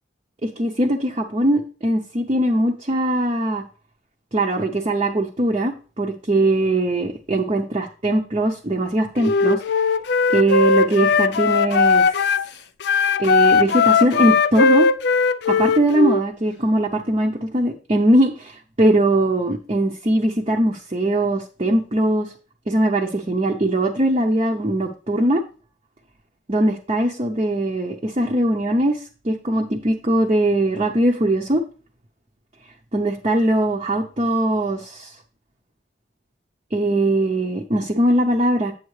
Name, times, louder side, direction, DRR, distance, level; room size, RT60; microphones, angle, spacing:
voice 1, 0.4-3.6 4.3-9.6 10.3-12.1 13.2-14.9 15.5-22.3 22.7-25.4 26.5-31.6 32.9-35.1 36.7-38.7, right 1 dB, 30° right, 0 dB, 0.7 m, -20 dB
Wind instrument woodwind instrument, 9.2-12.5 12.8-16.2, left 5 dB, 60° left, 0.3 m, -18 dB
8.4 x 7.3 x 3.2 m, 0.38 s
head